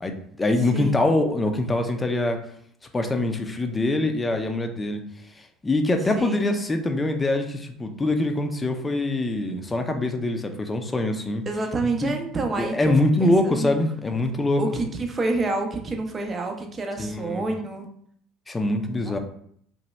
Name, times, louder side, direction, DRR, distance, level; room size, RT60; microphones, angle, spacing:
voice 1, 0.0-2.4 2.9-5.0 5.4-11.4 12.0-12.1 12.6-14.6 17.0-17.5 18.5-19.2, left 2 dB, 20° left, 5 dB, 0.5 m, -24 dB
voice 2, 6.2-6.5 11.5-12.9 13.2-13.8 14.6-17.9 19.1-19.2, right 3 dB, 30° right, 4 dB, 0.6 m, -28 dB
2.8 x 2.2 x 3.2 m, 0.65 s
hypercardioid pair, 75°, 0 cm